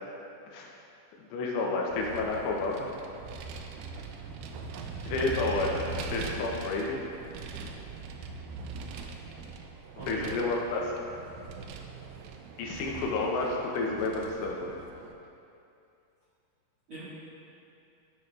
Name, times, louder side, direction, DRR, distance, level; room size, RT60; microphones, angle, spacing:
voice 1, 1.3-2.9 5.1-5.7 6.1-7.0 10.1-10.9 12.6-14.7, left 3 dB, 80° left, -2 dB, 2.8 m, -30 dB
Vehicle, 1.9-15.1, right 4 dB, 90° right, 3.0 m, -41 dB
voice 2, 5.5-5.9 10.0-10.3 16.9-17.0, right 1 dB, 55° right, -12 dB, 1.4 m, -41 dB
12.5 x 6.7 x 2.4 m, 2.6 s
omnidirectional pair, 5.2 m